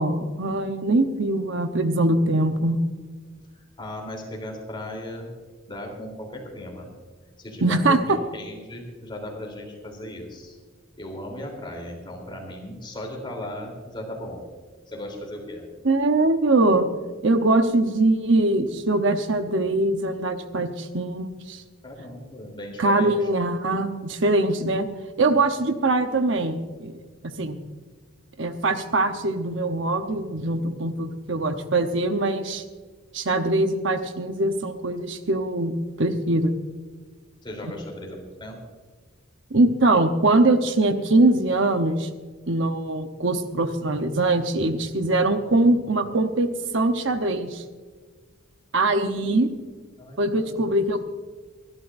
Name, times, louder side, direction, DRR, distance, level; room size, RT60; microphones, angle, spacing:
voice 1, 0.0-2.8 7.6-8.2 15.8-16.9 17.2-21.6 22.8-24.9 25.2-26.9 27.2-27.6 28.4-32.6 33.1-36.5 39.5-42.1 42.5-47.6 48.7-49.5 50.2-51.0, right 2 dB, 60° right, 7 dB, 0.9 m, -22 dB
voice 2, 3.5-5.4 5.7-6.9 7.4-8.0 8.3-10.6 11.0-14.5 14.9-15.7 21.8-23.3 37.4-38.6 50.0-50.7, left 1 dB, 25° left, 1 dB, 3.4 m, -37 dB
25.5 x 12.0 x 2.6 m, 1.5 s
head